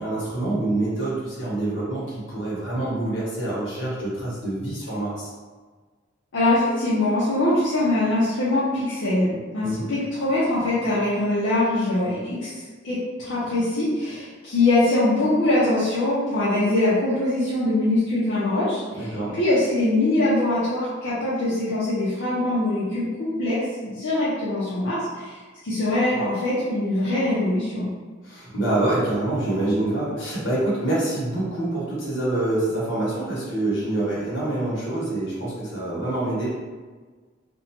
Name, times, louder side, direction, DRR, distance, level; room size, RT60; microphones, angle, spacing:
voice 1, 0.0-5.3 9.6-9.9 18.9-19.3 28.2-36.5, right 2 dB, 70° left, -8 dB, 1.1 m, -26 dB
voice 2, 6.3-27.9, left 2 dB, 85° left, -10 dB, 0.6 m, -23 dB
2.6 x 2.1 x 2.9 m, 1.4 s
head